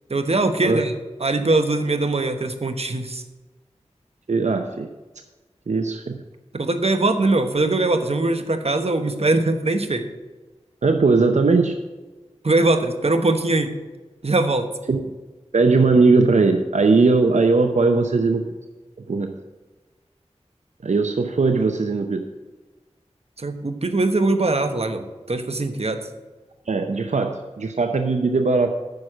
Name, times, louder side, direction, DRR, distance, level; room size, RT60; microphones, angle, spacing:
voice 1, 0.1-0.9 1.2-3.2 6.5-10.1 12.4-13.7 14.2-14.7 23.4-26.0, right 2 dB, 60° right, 7 dB, 1.1 m, -21 dB
voice 2, 4.3-4.9 5.7-6.2 10.8-11.8 14.9-15.0 15.5-18.4 19.1-19.3 20.8-22.3 26.7-28.7, right 3 dB, 85° right, 6 dB, 0.7 m, -19 dB
9.6 x 6.4 x 7.3 m, 1.2 s
wide cardioid pair, 50°, 12 cm